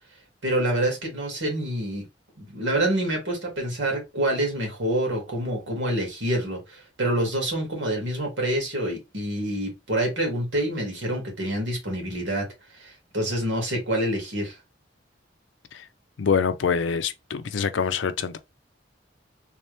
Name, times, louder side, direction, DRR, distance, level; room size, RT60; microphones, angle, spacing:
voice 1, 0.4-2.1 2.4-12.5 12.8-14.6, right 1 dB, 80° right, 1.9 m, -27 dB
voice 2, 16.2-18.4, left 6 dB, 80° left, 0.5 m, -25 dB
3.4 x 2.9 x 3.2 m
head